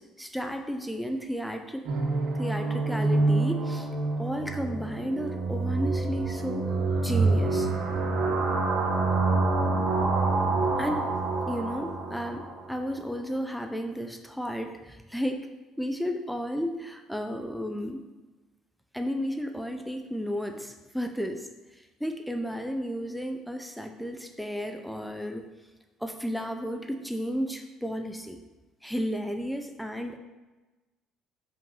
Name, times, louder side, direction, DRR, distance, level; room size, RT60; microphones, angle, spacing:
voice 1, 0.0-1.8 2.3-3.9 4.2-6.7 7.0-7.7 10.8-11.1 11.5-15.5 15.8-18.0 18.9-25.5 26.0-28.4 28.8-30.2, equal, ahead, 5 dB, 0.4 m, -33 dB
sound 1, 1.9-12.7, right 3 dB, 50° right, 1.1 m, -27 dB
5.6 x 5.0 x 5.4 m, 1.2 s
cardioid pair, 175°, 0 cm